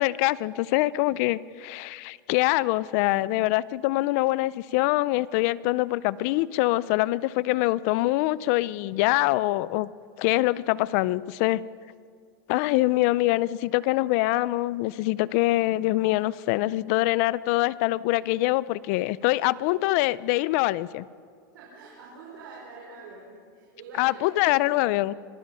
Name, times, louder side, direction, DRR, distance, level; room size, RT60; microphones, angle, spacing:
voice 1, 0.0-9.9 10.2-11.6 12.5-21.0 24.0-25.1, left 18 dB, 45° left, 20 dB, 0.5 m, -24 dB
voice 2, 21.5-24.7, right 3 dB, 85° right, -4 dB, 5.7 m, -45 dB
26.0 x 19.0 x 5.6 m, 2.2 s
supercardioid pair, 160°, 11 cm